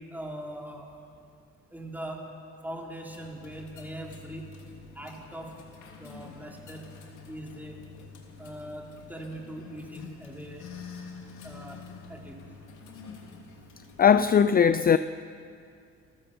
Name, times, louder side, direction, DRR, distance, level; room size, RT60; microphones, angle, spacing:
voice 1, 0.1-0.9 1.7-2.2 2.6-4.4 4.9-5.5 6.0-6.9 7.3-7.8 8.4-10.7 11.4-11.8 12.1-12.4, right 1 dB, 5° right, -1 dB, 4.0 m, -41 dB
sound 1, 3.1-14.3, left 5 dB, 80° left, 3.1 m, -47 dB
voice 2, 14.0-15.0, left 7 dB, 30° left, 13 dB, 0.5 m, -19 dB
29.0 x 14.0 x 7.2 m, 2.4 s
cardioid pair, 90°, 30 cm